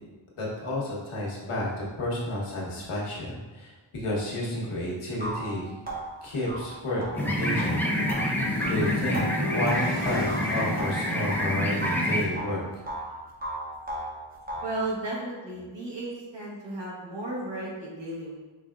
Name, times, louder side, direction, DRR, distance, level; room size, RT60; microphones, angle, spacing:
voice 1, 0.4-5.7 6.2-12.6, left 1 dB, 85° left, -4 dB, 1.2 m, -31 dB
sound 1, 4.6-4.7 5.2-11.5 11.8-13.1 13.4-14.8, right 1 dB, 20° right, 0.8 m, -36 dB
sound 2, 7.2-12.3, left 1 dB, 5° left, 0.4 m, -27 dB
sound 3, 9.1-12.3, left 1 dB, 25° left, 0.9 m, -38 dB
voice 2, 14.6-18.4, right 2 dB, 60° right, -5 dB, 1.3 m, -34 dB
5.3 x 3.3 x 2.5 m, 1.2 s
wide cardioid pair, 140°, 50 cm